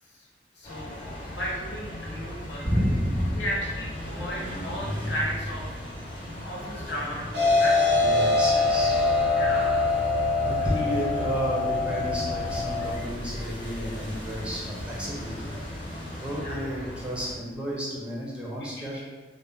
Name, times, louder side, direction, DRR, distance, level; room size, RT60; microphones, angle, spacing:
voice 1, 0.6-0.9 1.3-2.6 3.3-5.6 6.5-7.8 9.3-9.9 16.4-16.6 18.8-19.0, equal, 75° left, -4 dB, 0.8 m, -34 dB
sound 1, 0.6-17.4, left 1 dB, 30° left, 0.7 m, -37 dB
voice 2, 2.6-3.4 8.0-9.2 10.4-15.6 16.2-19.0, equal, 5° right, -5 dB, 0.5 m, -31 dB
sound 2, 7.3-12.9, left 3 dB, 85° right, 0.6 m, -24 dB
2.4 x 2.0 x 3.1 m, 1.3 s
head